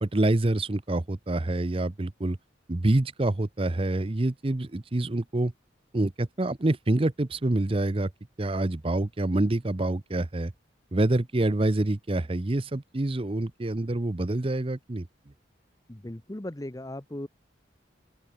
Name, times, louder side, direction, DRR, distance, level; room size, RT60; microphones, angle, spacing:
voice 1, 0.0-2.4 2.7-5.5 5.9-8.1 8.4-10.5 10.9-15.1, right 2 dB, 30° right, 0.7 m, -26 dB
voice 2, 15.9-17.3, left 1 dB, 20° left, 0.9 m, -37 dB
open air
head